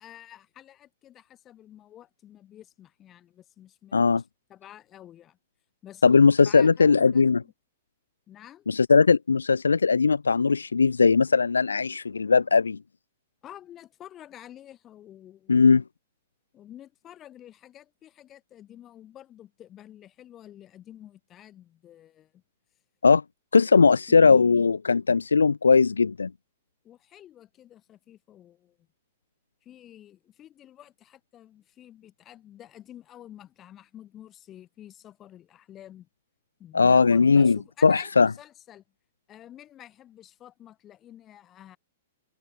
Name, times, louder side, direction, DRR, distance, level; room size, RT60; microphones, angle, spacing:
voice 1, 0.0-4.2 4.5-5.4 5.8-7.5 8.3-8.7 13.4-15.7 16.5-22.4 23.6-24.7 26.8-28.8 29.6-36.1 36.6-38.8 39.3-41.8, left 11 dB, 25° left, 7.1 m, -49 dB
voice 2, 3.9-4.2 6.0-7.4 8.7-12.8 15.5-15.8 23.0-23.2 23.5-26.3 36.7-38.3, left 5 dB, 75° left, 0.8 m, -19 dB
figure-of-eight pair, 105°, 0 cm